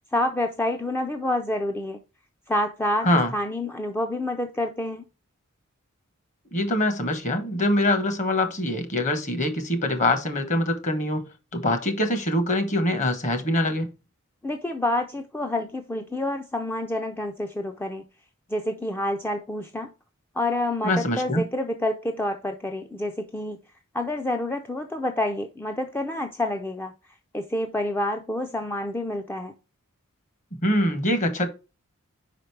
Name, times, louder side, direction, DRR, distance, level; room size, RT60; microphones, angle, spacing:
voice 1, 0.1-2.0 2.5-3.1 3.3-5.0 14.4-18.0 18.5-19.9 20.4-23.6 23.9-26.9 27.3-29.5, left 1 dB, 10° left, 0.4 m, -28 dB
voice 2, 6.5-11.3 11.5-13.9 20.8-21.4 30.6-31.5, left 1 dB, 35° left, 1.1 m, -24 dB
5.1 x 5.0 x 4.6 m
head